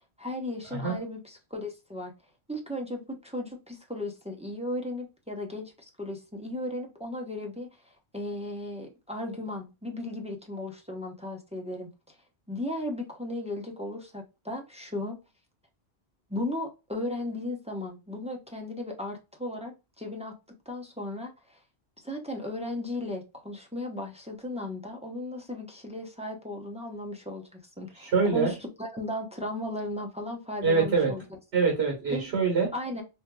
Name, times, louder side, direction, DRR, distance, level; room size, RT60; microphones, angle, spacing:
voice 1, 0.2-2.1 2.5-5.7 6.0-7.7 8.1-11.9 12.5-15.2 16.3-19.7 20.0-20.3 20.7-21.6 22.0-31.2 32.1-32.3 32.7-33.0, left 1 dB, 5° right, 1 dB, 0.7 m, -36 dB
voice 2, 28.0-28.5 30.6-31.1 31.5-32.7, right 4 dB, 85° right, 0 dB, 1.5 m, -24 dB
4.5 x 2.6 x 2.2 m, 0.27 s
omnidirectional pair, 1.1 m